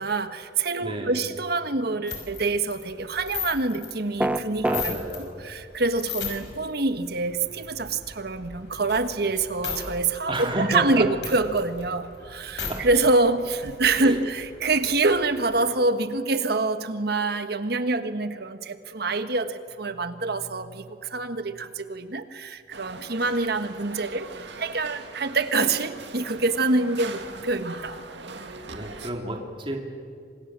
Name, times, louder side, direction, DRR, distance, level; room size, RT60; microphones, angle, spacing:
voice 1, 0.0-5.0 5.4-28.0, right 3 dB, 60° right, 10 dB, 1.5 m, -26 dB
voice 2, 0.8-1.2 4.7-5.4 10.3-11.1 12.7-12.8 14.0-14.2 28.4-29.8, right 1 dB, 30° right, 2 dB, 2.9 m, -30 dB
sound 1, 2.1-5.2 5.6-6.6 7.1-9.8 10.1-10.2 10.5-12.7 13.2-13.3 13.4-15.4, left 7 dB, 80° left, 5.6 m, -37 dB
sound 2, 4.2-4.9, right 1 dB, 10° right, 0.8 m, -23 dB
sound 3, 22.7-29.1, right 3 dB, 80° right, 2.1 m, -41 dB
28.5 x 26.0 x 7.5 m, 2.3 s
head